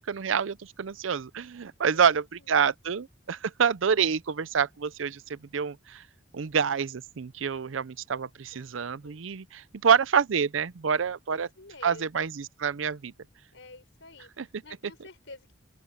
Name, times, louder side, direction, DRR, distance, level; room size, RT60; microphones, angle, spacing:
voice 1, 0.0-6.0 6.3-11.5 11.8-13.1 14.4-14.5, right 7 dB, 80° right, 0.6 m, -27 dB
voice 2, 1.9-2.7 8.5-8.7 9.0-9.3 11.3-12.3 13.5-15.5, left 2 dB, 70° left, 5.9 m, -50 dB
open air
head